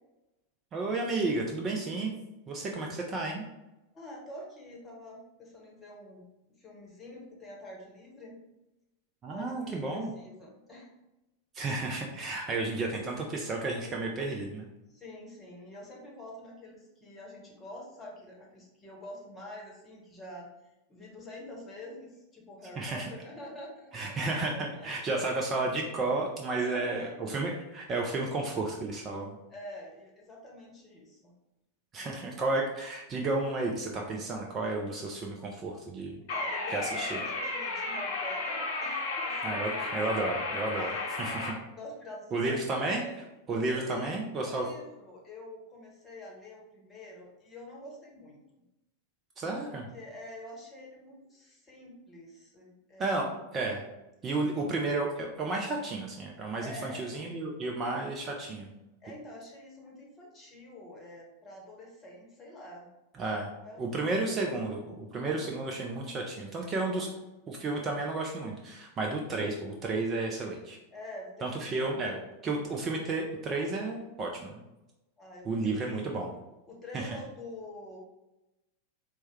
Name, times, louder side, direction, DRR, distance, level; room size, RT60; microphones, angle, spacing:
voice 1, 0.7-2.1 2.5-3.4 9.2-10.1 11.5-14.7 22.8-23.1 23.9-29.4 31.9-36.1 36.7-37.2 39.4-40.9 41.2-41.5 42.3-43.0 43.5-44.7 49.4-49.9 53.0-53.3 53.5-53.8 54.2-58.7 63.2-63.5 63.8-67.1 67.5-70.8 71.4-74.6 75.4-76.3 76.9-77.1, right 2 dB, 25° right, 0 dB, 0.5 m, -32 dB
voice 2, 3.9-6.3 6.6-8.4 9.2-10.9 14.9-20.5 20.9-25.1 26.6-27.2 29.5-31.3 31.9-32.2 36.3-41.3 41.8-43.2 43.7-44.1 44.4-48.6 49.6-49.7 49.9-53.3 56.6-57.2 59.0-62.9 63.6-64.1 66.8-67.4 70.9-71.3 75.2-76.2 76.7-78.0, left 1 dB, 20° left, -2 dB, 1.1 m, -47 dB
sound 1, 36.3-41.5, left 3 dB, 50° left, 0.7 m, -33 dB
4.4 x 2.2 x 3.1 m, 0.96 s
figure-of-eight pair, 90°, 0 cm